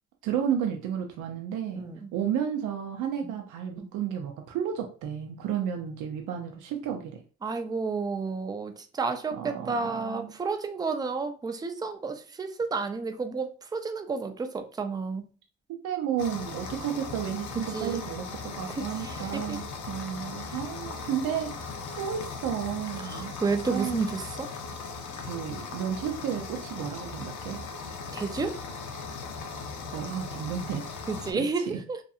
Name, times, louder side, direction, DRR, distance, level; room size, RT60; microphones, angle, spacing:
voice 1, 0.2-1.9 2.1-7.2 9.3-10.3 15.8-24.1 25.2-27.6 29.9-31.0 31.3-31.8, right 8 dB, 80° right, 0.5 m, -32 dB
voice 2, 1.8-2.1 3.2-3.3 3.8-3.9 7.4-15.2 17.7-18.0 18.8-19.6 23.0-24.4 28.1-28.6 31.1-32.0, right 4 dB, 15° right, 0.3 m, -31 dB
sound 1, 16.2-31.3, left 4 dB, 75° left, 0.6 m, -38 dB
2.7 x 2.5 x 2.4 m
cardioid pair, 90°, 30 cm